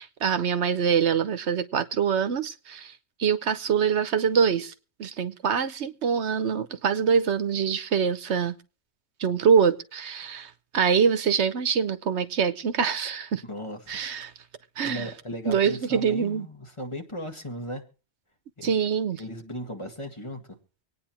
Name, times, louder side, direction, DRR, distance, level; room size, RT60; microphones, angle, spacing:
voice 1, 0.0-2.9 3.2-4.7 5.0-8.6 9.2-13.4 13.9-14.3 14.8-15.1 15.5-16.5 18.6-19.2, right 7 dB, 85° right, 1.2 m, -24 dB
voice 2, 13.5-14.0 14.8-17.8 18.6-18.7 19.2-20.6, equal, 25° left, 1.8 m, -37 dB
25.5 x 9.5 x 3.0 m
omnidirectional pair, 1.1 m